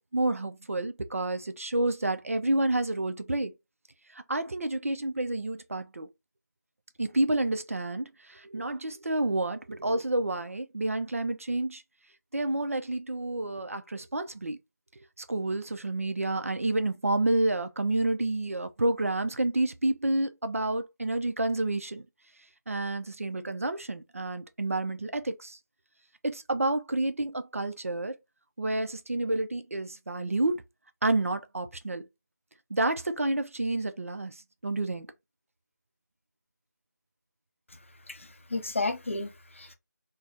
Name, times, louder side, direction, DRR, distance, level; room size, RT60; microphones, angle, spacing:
voice 1, 0.1-3.5 4.1-6.1 7.0-11.8 12.3-14.6 15.3-22.0 22.7-25.6 26.2-28.1 28.6-30.6 31.0-32.0 32.7-34.4 34.6-35.1, right 2 dB, 50° right, 0.5 m, -29 dB
voice 2, 38.1-39.7, left 3 dB, 45° left, 0.5 m, -33 dB
3.2 x 2.1 x 2.6 m
figure-of-eight pair, 165°, 9 cm